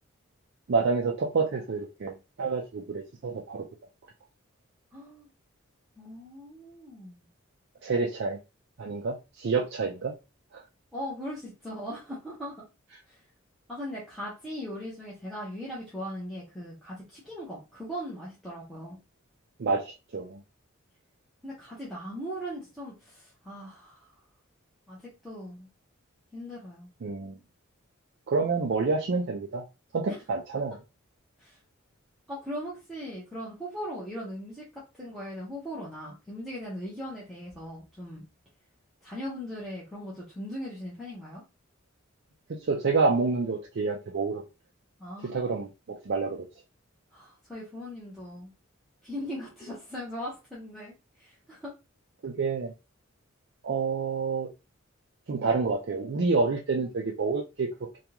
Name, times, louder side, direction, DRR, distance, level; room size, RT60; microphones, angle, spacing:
voice 1, 0.7-3.6 7.8-8.4 8.8-10.1 10.5-10.6 19.6-20.4 27.0-27.4 28.3-29.6 29.9-30.8 42.5-44.4 45.2-46.5 52.2-52.7 53.6-54.5 55.3-57.7, right 4 dB, 55° right, 0.4 m, -28 dB
voice 2, 4.9-5.3 6.0-7.3 10.9-12.6 13.1-13.2 13.7-19.0 21.4-24.1 24.9-25.0 25.2-25.7 26.3-26.9 30.1-30.2 31.4-31.6 32.3-38.2 39.0-41.4 45.0-45.6 47.1-48.5 49.0-50.9 51.2-51.7, equal, ahead, 0.9 m, -39 dB
3.5 x 2.3 x 2.9 m
head